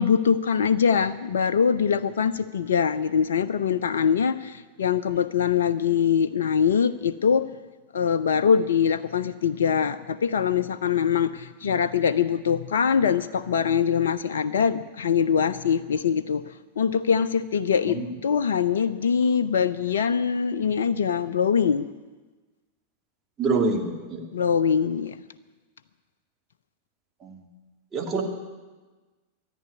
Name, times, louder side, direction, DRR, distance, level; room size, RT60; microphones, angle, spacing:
voice 1, 0.0-7.5 7.9-21.9 24.3-25.2, left 7 dB, 65° left, 13 dB, 0.5 m, -23 dB
voice 2, 23.4-24.3 27.2-27.4 27.9-28.2, right 3 dB, 25° right, 0 dB, 2.7 m, -26 dB
13.5 x 11.0 x 9.7 m, 1.3 s
figure-of-eight pair, 90°, 0 cm